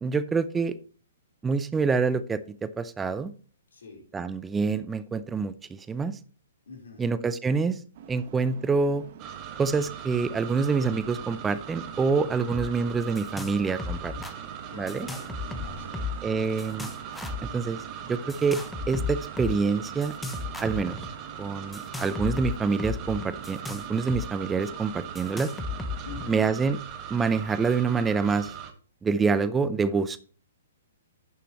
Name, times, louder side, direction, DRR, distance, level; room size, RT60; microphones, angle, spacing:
voice 1, 0.0-0.8 1.4-3.3 4.1-6.2 7.0-7.8 8.1-9.0 9.6-14.1 14.7-15.1 16.2-16.9 17.5-18.6 18.9-20.1 20.6-21.0 21.4-25.5 26.3-26.8 27.1-28.5 29.0-30.2, right 4 dB, 10° right, 14 dB, 0.5 m, -26 dB
voice 2, 3.7-4.0 6.7-7.1 14.7-16.0 16.5-16.7 26.0-26.5, left 3 dB, 80° left, 1 dB, 4.1 m, -45 dB
sound 1, 7.9-26.5, right 8 dB, 50° right, 1.2 m, -46 dB
sound 2, 9.2-28.7, right 9 dB, 30° right, 1.3 m, -41 dB
sound 3, 12.5-12.7 12.9-13.5 13.8-14.3 14.9-16.3 16.6-17.5 18.3-19.6 20.0-21.1 21.7-24.3 24.5-24.6 25.2-26.2, left 4 dB, 5° left, 0.9 m, -34 dB
11.0 x 6.8 x 3.1 m, 0.42 s
hypercardioid pair, 130°, 0 cm